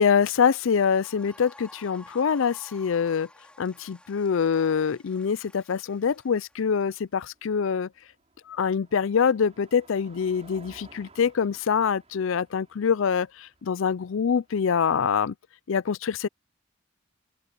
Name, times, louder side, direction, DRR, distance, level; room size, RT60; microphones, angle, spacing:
voice 1, 0.0-3.3 3.6-7.9 8.5-15.3 15.7-16.3, left 6 dB, 70° left, 0.4 m, -25 dB
sound 1, 0.6-7.0, left 1 dB, 5° left, 4.1 m, -52 dB
Car passing by, 6.5-14.8, right 3 dB, 30° right, 6.6 m, -56 dB
open air
head